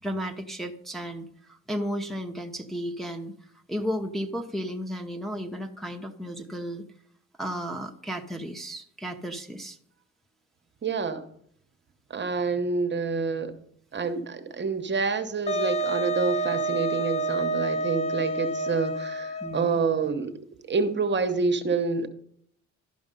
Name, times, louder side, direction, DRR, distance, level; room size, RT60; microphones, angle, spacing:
voice 1, 0.0-3.3 3.7-6.8 7.4-9.8 19.4-19.8, equal, ahead, 2 dB, 0.9 m, -33 dB
voice 2, 10.8-11.2 12.1-13.5 13.9-20.3 20.7-22.1, right 4 dB, 35° right, 7 dB, 1.0 m, -27 dB
Wind instrument woodwind instrument, 15.5-19.8, right 2 dB, 20° left, 0.5 m, -28 dB
12.0 x 5.2 x 5.3 m, 0.65 s
cardioid pair, 90°, 30 cm